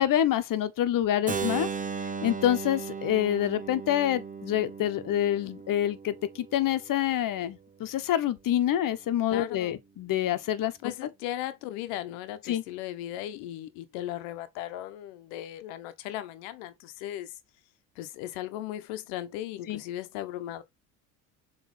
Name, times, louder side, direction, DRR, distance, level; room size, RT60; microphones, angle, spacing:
voice 1, 0.0-1.7 2.2-10.7 12.5-12.6 19.7-19.8, left 11 dB, 50° left, 1.3 m, -27 dB
Keyboard (musical), 1.3-7.1, right 6 dB, 20° right, 0.9 m, -36 dB
voice 2, 9.3-9.8 10.8-17.3 17.9-20.6, left 13 dB, 80° left, 1.2 m, -37 dB
7.2 x 3.5 x 4.3 m
supercardioid pair, 75°, 40 cm